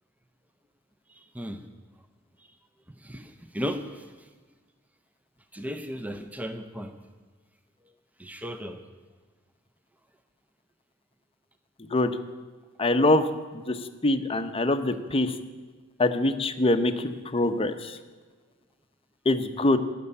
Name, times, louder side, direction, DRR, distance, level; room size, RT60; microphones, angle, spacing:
voice 1, 1.1-1.6 3.0-4.3 5.5-6.9 8.2-8.8, equal, 5° right, 7 dB, 0.7 m, -35 dB
voice 2, 12.8-13.3 13.5-13.8 14.0-15.3 16.0-18.0 19.3-19.8, left 2 dB, 25° left, 8 dB, 0.7 m, -24 dB
12.5 x 6.8 x 9.7 m, 1.4 s
head